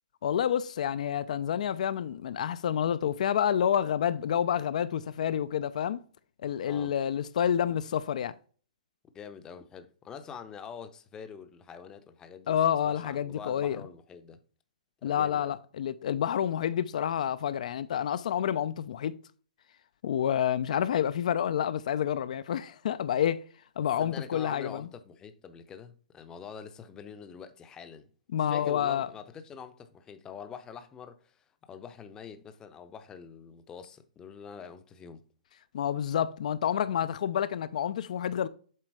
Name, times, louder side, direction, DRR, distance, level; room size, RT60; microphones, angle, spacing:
voice 1, 0.2-6.0 6.4-8.3 12.5-13.8 15.0-19.2 20.0-23.4 23.8-24.9 28.3-29.1 35.7-38.5, left 9 dB, 60° left, 0.5 m, -28 dB
voice 2, 9.1-12.6 12.9-14.4 15.0-15.6 24.0-28.1 28.5-35.2, left 7 dB, 15° left, 0.7 m, -45 dB
7.5 x 3.8 x 4.7 m
hypercardioid pair, 145°, 4 cm